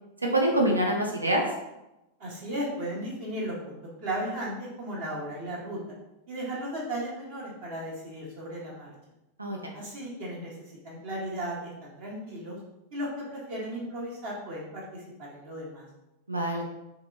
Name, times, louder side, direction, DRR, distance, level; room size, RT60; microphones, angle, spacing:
voice 1, 0.2-1.4 9.4-9.6 16.3-16.6, right 1 dB, 80° right, 0 dB, 0.5 m, -25 dB
voice 2, 2.2-3.8 4.0-5.9 6.3-8.9 9.7-12.6 12.9-15.8, right 1 dB, 45° right, -4 dB, 1.4 m, -35 dB
4.4 x 3.0 x 2.5 m, 0.93 s
figure-of-eight pair, 90°, 0 cm